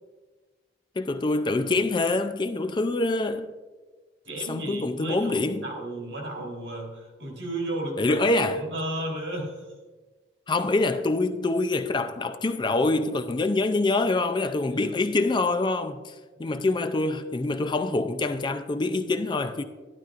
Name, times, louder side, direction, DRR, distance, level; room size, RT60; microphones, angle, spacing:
voice 1, 1.0-3.5 4.5-5.6 8.0-8.6 10.5-16.1 16.4-19.6, left 2 dB, 25° left, 0.4 m, -25 dB
voice 2, 4.2-8.2 8.5-9.7 14.7-15.0 16.4-16.7, right 1 dB, 85° right, 3.3 m, -34 dB
12.0 x 12.0 x 2.5 m
head